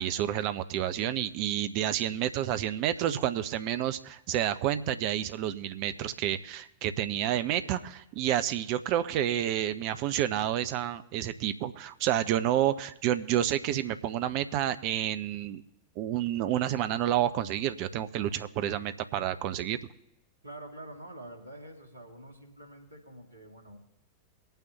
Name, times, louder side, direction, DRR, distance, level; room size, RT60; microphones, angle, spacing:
voice 1, 0.0-15.6 16.0-19.8, right 11 dB, 45° right, 12 dB, 0.7 m, -29 dB
voice 2, 20.4-23.8, right 1 dB, 80° right, 2 dB, 2.3 m, -47 dB
23.0 x 9.0 x 2.8 m, 0.87 s
figure-of-eight pair, 90°, 0 cm